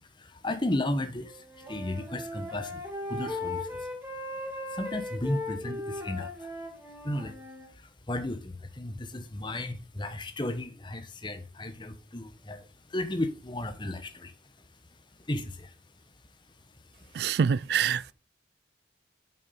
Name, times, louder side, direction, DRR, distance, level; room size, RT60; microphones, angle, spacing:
voice 1, 0.0-3.9 4.7-6.5 7.0-7.4 7.7-14.3 15.3-15.7 17.0-17.2, left 1 dB, 25° left, 1.0 m, -34 dB
Wind instrument woodwind instrument, 1.2-7.7, left 2 dB, 15° right, 2.2 m, -38 dB
voice 2, 17.1-18.1, right 7 dB, 55° right, 0.3 m, -26 dB
6.9 x 6.9 x 5.6 m
head